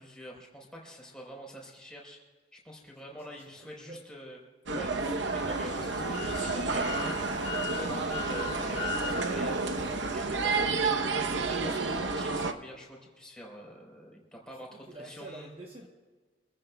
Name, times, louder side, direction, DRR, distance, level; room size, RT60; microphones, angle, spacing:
voice 1, 0.0-2.2 2.5-4.4 4.7-15.5, equal, 5° left, -2 dB, 4.2 m, -47 dB
voice 2, 3.1-4.0 14.5-15.9, right 1 dB, 30° right, 0 dB, 1.1 m, -48 dB
sound 1, 4.7-12.5, right 3 dB, 75° right, 0.9 m, -30 dB
sound 2, 5.0-10.3, left 3 dB, 90° left, 1.6 m, -39 dB
26.5 x 15.5 x 2.3 m, 1.4 s
head